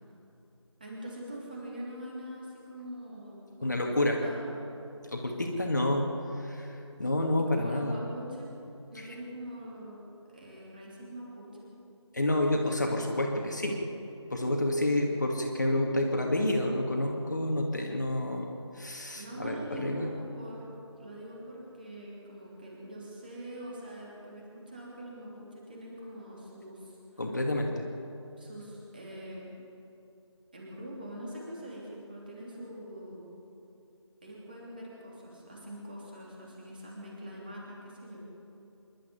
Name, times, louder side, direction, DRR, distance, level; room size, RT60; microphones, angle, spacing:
voice 1, 0.8-4.5 7.5-8.5 8.9-10.0 10.3-11.7 19.1-27.0 28.4-29.5 30.5-33.3 34.2-38.2, equal, 20° right, -4 dB, 3.1 m, -43 dB
voice 2, 3.6-4.2 5.1-8.0 8.9-9.1 12.1-13.8 14.3-20.1 27.2-27.8, left 1 dB, 35° left, 1 dB, 2.2 m, -29 dB
26.0 x 11.5 x 9.6 m, 2.7 s
figure-of-eight pair, 175°, 16 cm